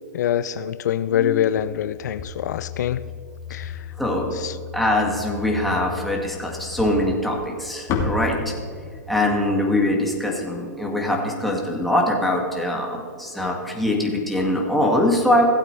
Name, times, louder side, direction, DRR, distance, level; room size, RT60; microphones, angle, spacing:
voice 1, 0.1-3.0 3.5-3.7 4.3-4.6, left 10 dB, 70° left, 14 dB, 0.4 m, -24 dB
voice 2, 4.0-4.4 4.7-8.5 9.1-15.4, left 1 dB, ahead, -2 dB, 2.2 m, -23 dB
sound 1, 6.8-11.1, left 3 dB, 30° left, 1.9 m, -30 dB
16.0 x 8.2 x 3.4 m, 2.2 s
hypercardioid pair, 125°, 10 cm